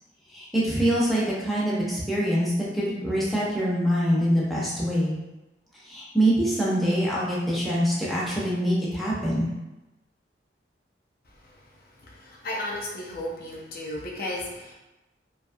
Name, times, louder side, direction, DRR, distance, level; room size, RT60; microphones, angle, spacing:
voice 1, 0.3-5.2 5.8-9.5, equal, ahead, -7 dB, 0.5 m, -24 dB
voice 2, 12.0-14.7, left 1 dB, 55° left, -2 dB, 0.5 m, -34 dB
2.6 x 2.2 x 2.5 m, 1.0 s
head